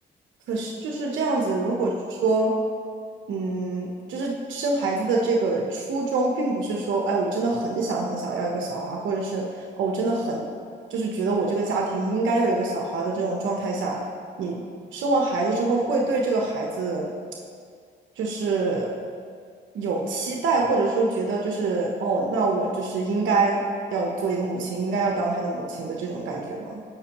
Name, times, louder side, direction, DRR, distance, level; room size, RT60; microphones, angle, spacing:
voice 1, 0.5-2.5 3.3-10.5 10.9-14.0 14.4-14.6 14.9-17.1 18.2-18.9 19.7-23.6 23.9-26.8, right 3 dB, 75° right, -1 dB, 1.0 m, -25 dB
15.5 x 5.3 x 3.0 m, 2.1 s
cardioid pair, 90°, 20 cm